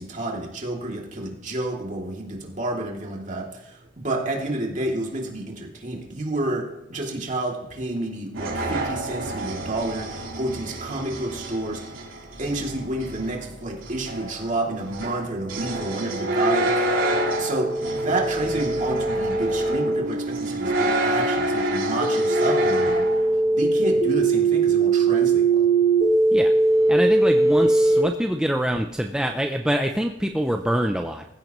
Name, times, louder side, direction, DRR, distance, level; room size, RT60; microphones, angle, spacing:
voice 1, 0.0-3.5 4.0-11.8 12.4-16.7 17.4-23.0 23.5-25.7, right 2 dB, 40° right, 0 dB, 2.7 m, -29 dB
sound 1, 8.3-23.4, right 1 dB, 85° right, 3.8 m, -28 dB
sound 2, 14.8-28.0, right 3 dB, 30° left, 2.9 m, -22 dB
voice 2, 26.9-31.2, equal, 5° right, 3 dB, 0.5 m, -25 dB
19.0 x 15.0 x 3.1 m, 0.88 s
head